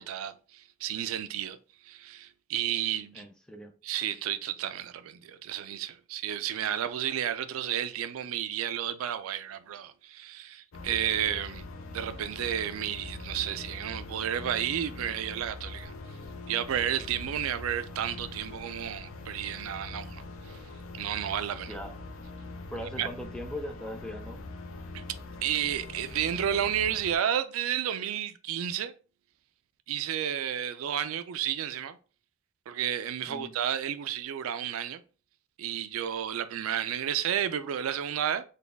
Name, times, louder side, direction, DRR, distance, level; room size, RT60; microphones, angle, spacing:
voice 1, 0.0-1.6 1.8-3.3 3.8-11.7 11.9-15.9 16.5-20.2 20.5-20.6 20.9-21.7 23.0-23.1 24.9-25.0 25.4-28.9 29.9-32.0 32.7-35.0 35.6-38.4, right 10 dB, 80° right, 0.3 m, -32 dB
voice 2, 3.1-3.7 21.6-21.9 22.7-24.4 33.3-33.5, left 1 dB, 5° left, 0.4 m, -39 dB
sound 1, 10.7-27.2, left 2 dB, 70° left, 0.5 m, -43 dB
4.0 x 2.3 x 3.4 m
head